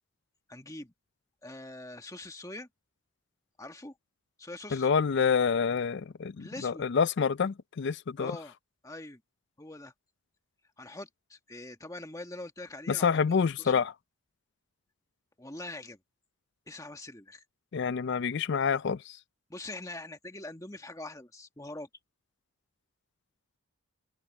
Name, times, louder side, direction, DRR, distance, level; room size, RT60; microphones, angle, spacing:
voice 1, 0.5-0.9 1.4-2.7 3.6-3.9 4.4-4.9 6.4-6.8 8.2-8.5 8.8-9.2 9.6-9.9 10.8-13.8 15.4-16.0 16.7-17.4 19.5-21.9, left 2 dB, 15° left, 1.6 m, -43 dB
voice 2, 4.7-8.3 12.9-13.9 17.7-19.2, left 6 dB, 50° left, 0.4 m, -27 dB
head